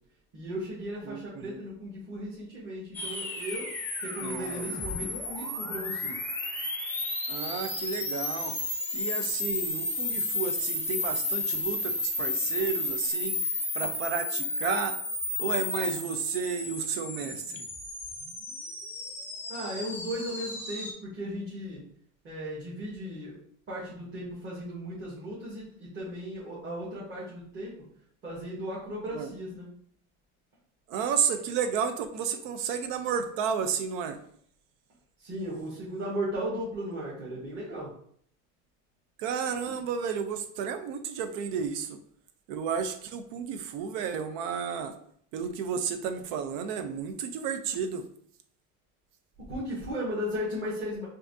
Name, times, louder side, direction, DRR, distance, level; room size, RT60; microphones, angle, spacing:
voice 1, 0.3-3.7 4.0-6.2 10.1-10.2 19.5-21.8 22.2-23.4 23.7-27.7 28.2-29.8 35.2-37.9 39.7-39.8 49.4-51.1, equal, 30° right, -8 dB, 1.4 m, -36 dB
voice 2, 1.0-1.6 4.2-4.7 7.3-8.6 8.9-13.4 13.7-15.0 15.4-17.7 29.1-29.3 30.9-34.2 39.2-42.0 42.5-44.9 45.3-48.1, right 7 dB, 75° right, 8 dB, 0.7 m, -32 dB
sound 1, 2.9-20.9, left 2 dB, 5° left, 0.5 m, -33 dB
5.6 x 2.7 x 2.6 m, 0.63 s
cardioid pair, 155°, 38 cm